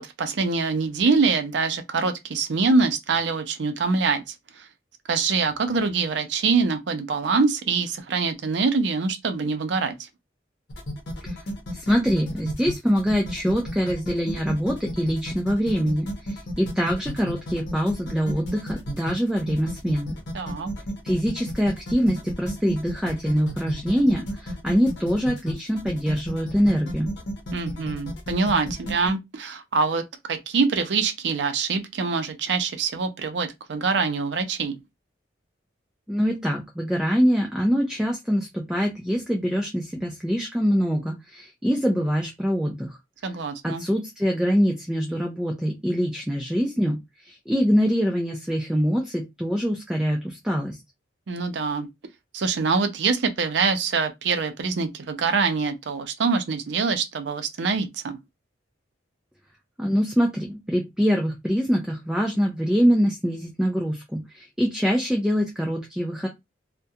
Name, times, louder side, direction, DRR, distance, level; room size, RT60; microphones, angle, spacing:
voice 1, 0.0-4.7 5.1-10.1 20.3-20.7 27.5-34.7 43.2-43.9 51.3-51.9 52.3-58.2, right 4 dB, 70° right, 0.5 m, -24 dB
sound 1, 10.7-29.1, equal, 70° left, 0.7 m, -33 dB
voice 2, 11.7-20.1 21.0-27.1 36.1-42.9 43.6-47.0 47.2-50.8 59.8-66.3, equal, 5° right, 0.4 m, -24 dB
2.3 x 2.1 x 2.7 m
head